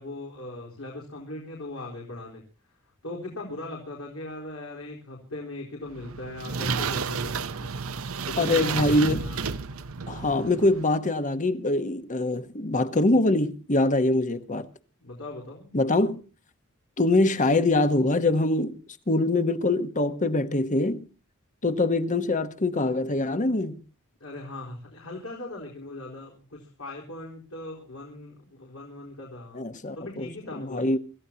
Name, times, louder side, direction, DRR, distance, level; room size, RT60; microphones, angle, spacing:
voice 1, 0.0-2.4 3.0-7.7 8.2-9.5 15.0-15.7 24.2-29.6 29.9-30.9, left 2 dB, 75° left, 4.3 m, -39 dB
sound 1, 5.9-10.8, right 5 dB, 75° right, 0.9 m, -31 dB
voice 2, 8.4-9.2 10.1-14.7 15.7-16.2 17.0-18.8 19.1-21.1 21.6-23.8 29.5-30.3 30.5-31.0, left 2 dB, 35° left, 1.2 m, -24 dB
26.5 x 14.0 x 2.9 m
head